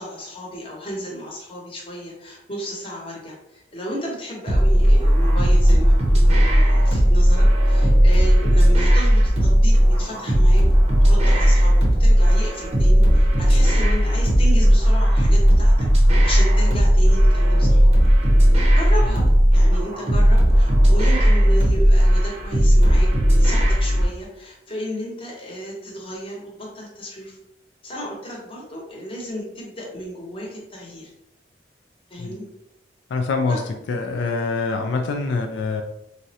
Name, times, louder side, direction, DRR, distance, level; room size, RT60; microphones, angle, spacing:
voice 1, 0.0-10.6 11.0-15.9 16.2-17.9 18.5-19.3 19.5-27.4 27.8-31.1 32.1-32.4 33.5-33.6, equal, 30° left, -3 dB, 0.8 m, -33 dB
sound 1, 4.5-24.1, equal, 35° right, 0.6 m, -15 dB
voice 2, 33.1-33.6 33.9-35.8, left 4 dB, 85° left, 4 dB, 0.3 m, -24 dB
3.6 x 2.1 x 2.7 m, 0.86 s
head